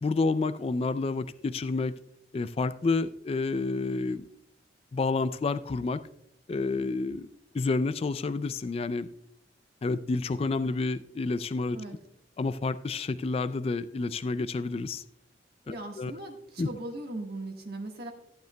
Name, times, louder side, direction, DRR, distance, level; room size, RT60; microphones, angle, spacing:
voice 1, 0.0-2.0 2.3-4.3 4.9-6.0 6.5-7.3 7.5-9.1 9.8-11.8 12.4-15.0 15.7-16.1 16.6-16.7, left 3 dB, 35° left, 13 dB, 0.3 m, -29 dB
voice 2, 15.7-18.1, right 2 dB, 60° right, 2 dB, 1.5 m, -39 dB
14.5 x 9.0 x 2.2 m, 0.74 s
head